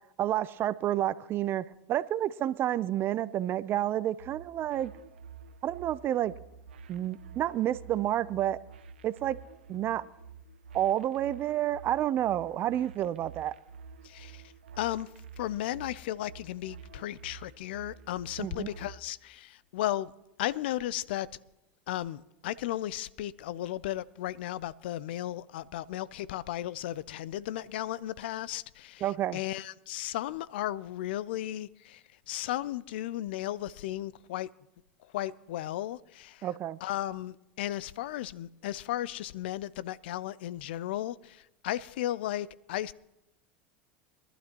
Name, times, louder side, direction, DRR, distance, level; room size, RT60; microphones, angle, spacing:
voice 1, 0.2-4.9 5.6-6.3 6.9-8.6 9.0-9.4 9.7-10.0 10.7-13.5 18.4-18.7 29.0-29.4 36.4-36.8, right 12 dB, 40° right, 0.6 m, -29 dB
sound 1, 4.2-19.0, right 6 dB, 85° right, 0.7 m, -50 dB
voice 2, 14.0-15.1 15.4-20.1 20.4-21.3 21.9-34.5 35.0-36.5 36.8-42.9, left 13 dB, 75° left, 0.5 m, -35 dB
23.0 x 12.0 x 3.0 m
hypercardioid pair, 95°, 6 cm